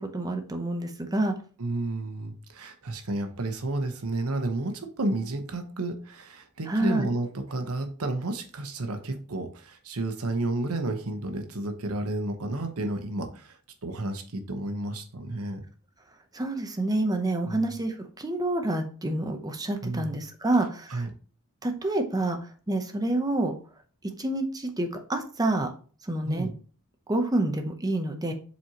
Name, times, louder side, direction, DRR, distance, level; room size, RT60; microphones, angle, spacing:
voice 1, 0.0-1.3 6.7-7.1 16.3-21.1 21.6-23.5 24.2-25.7 26.0-26.5 27.1-28.3, right 2 dB, 15° right, 5 dB, 0.7 m, -28 dB
voice 2, 1.6-15.6 17.4-17.7 19.8-20.2 20.9-21.1 26.2-26.5, right 2 dB, 90° right, 6 dB, 1.0 m, -31 dB
7.6 x 4.2 x 2.9 m, 0.41 s
head